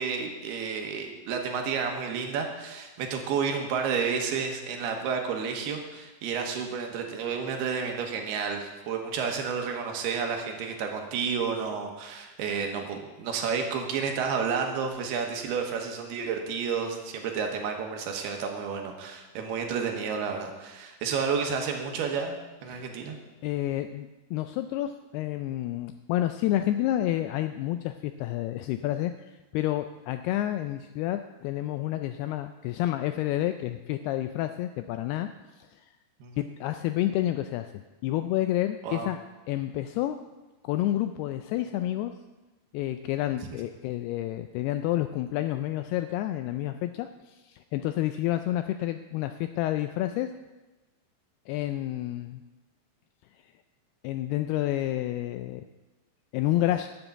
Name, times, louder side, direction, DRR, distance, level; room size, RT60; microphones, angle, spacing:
voice 1, 0.0-22.4 22.6-23.2 36.2-36.4 38.8-39.1, right 6 dB, 70° right, 3 dB, 3.0 m, -31 dB
voice 2, 23.4-35.3 35.6-35.9 36.4-37.7 38.0-39.2 39.5-40.2 40.6-42.1 42.7-50.3 51.5-52.4 54.0-55.7 56.3-56.9, left 13 dB, 85° left, 9 dB, 2.3 m, -29 dB
11.0 x 7.1 x 7.9 m, 1.1 s
omnidirectional pair, 5.0 m